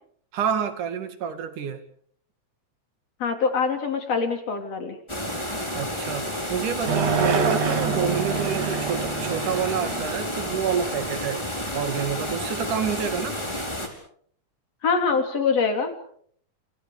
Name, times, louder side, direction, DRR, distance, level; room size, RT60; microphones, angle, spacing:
voice 1, 0.3-1.8 5.8-13.4, right 7 dB, 90° right, 10 dB, 3.8 m, -28 dB
voice 2, 3.2-5.0 14.8-15.9, left 5 dB, 55° left, 6 dB, 4.3 m, -24 dB
sound 1, 5.1-13.9, left 1 dB, 10° left, 4.5 m, -31 dB
sound 2, 6.9-11.2, right 5 dB, 60° right, 3.6 m, -27 dB
29.0 x 29.0 x 5.1 m, 0.62 s
omnidirectional pair, 3.5 m